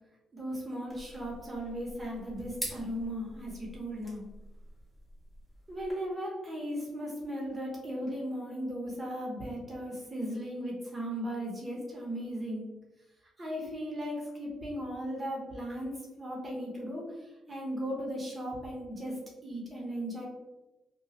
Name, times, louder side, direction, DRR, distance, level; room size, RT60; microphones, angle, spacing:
voice 1, 0.3-4.2 5.7-12.7 13.4-17.1 17.5-19.2 19.4-20.2, equal, 25° right, -3 dB, 0.9 m, -37 dB
sound 1, 0.9-5.9, equal, 10° left, 1.4 m, -45 dB
2.8 x 2.3 x 2.9 m, 1.1 s
cardioid pair, 90°, 0 cm